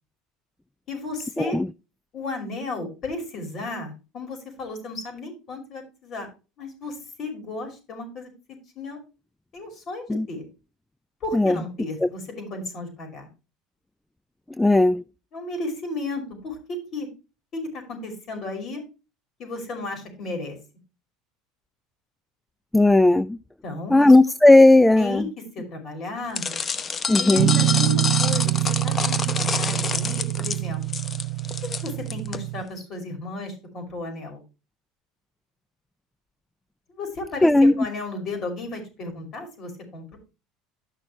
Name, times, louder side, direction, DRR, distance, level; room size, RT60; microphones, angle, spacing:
voice 1, 0.9-1.6 2.1-6.3 6.6-9.0 9.5-10.5 11.2-13.3 15.3-17.1 17.5-18.8 19.4-20.6 23.6-24.2 25.0-25.3 25.5-26.6 27.2-30.8 31.6-34.4 37.0-40.2, left 2 dB, 45° left, 5.5 m, -34 dB
voice 2, 14.6-15.0 22.7-23.4 23.9-25.2 27.1-27.5 37.4-37.9, left 2 dB, 5° left, 0.4 m, -16 dB
sound 1, 26.3-32.4, left 5 dB, 30° left, 0.8 m, -28 dB
Guitar, 27.4-32.6, right 19 dB, 65° right, 0.3 m, -25 dB
13.0 x 6.2 x 3.2 m
supercardioid pair, 110°, 0 cm